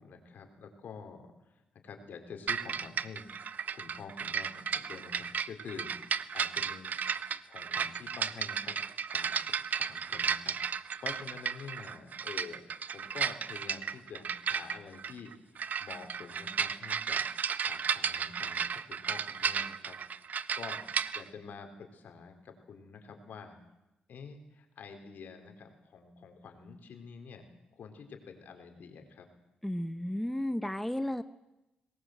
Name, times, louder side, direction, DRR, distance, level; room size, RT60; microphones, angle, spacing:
voice 1, 0.0-5.9 6.3-8.8 9.0-15.3 15.8-17.3 17.6-20.0 20.5-20.8 21.1-23.6 24.1-29.3, left 5 dB, 70° left, 5 dB, 3.9 m, -48 dB
sound 1, 2.5-21.2, right 7 dB, 60° right, 0.8 m, -34 dB
voice 2, 29.6-31.2, left 1 dB, 5° left, 11 dB, 1.0 m, -33 dB
22.0 x 19.5 x 7.8 m, 0.96 s
cardioid pair, 75°, 3 cm